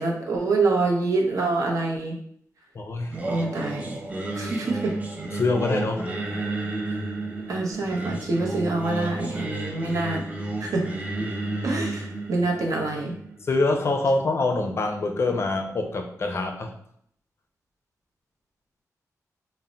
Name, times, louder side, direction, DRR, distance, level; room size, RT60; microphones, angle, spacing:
voice 1, 0.0-2.2 3.3-4.0 4.4-4.9 7.5-10.2 10.6-10.8 11.6-13.1, right 3 dB, 70° right, 0 dB, 0.6 m, -26 dB
voice 2, 2.7-3.2 5.3-6.1 13.5-16.7, left 3 dB, 45° left, 4 dB, 0.4 m, -25 dB
Singing, 3.1-14.2, right 2 dB, 25° right, 0.5 m, -32 dB
2.1 x 2.0 x 3.8 m, 0.67 s
wide cardioid pair, 110°, 6 cm